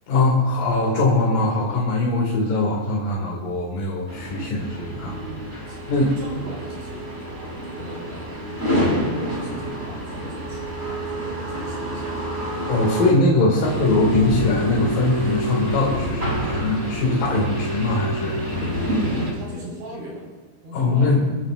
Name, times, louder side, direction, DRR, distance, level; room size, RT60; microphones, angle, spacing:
voice 1, 0.1-5.1 5.5-6.1 12.7-18.6 20.7-21.2, left 2 dB, 55° left, -3 dB, 3.4 m, -21 dB
sound 1, 4.1-13.1 13.6-19.3, equal, 20° right, 2.3 m, -27 dB
voice 2, 4.9-12.2 13.6-13.8 19.1-20.3 20.6-21.3, right 1 dB, 60° right, -3 dB, 7.1 m, -39 dB
26.0 x 14.5 x 2.5 m, 1.3 s
omnidirectional pair, 5.4 m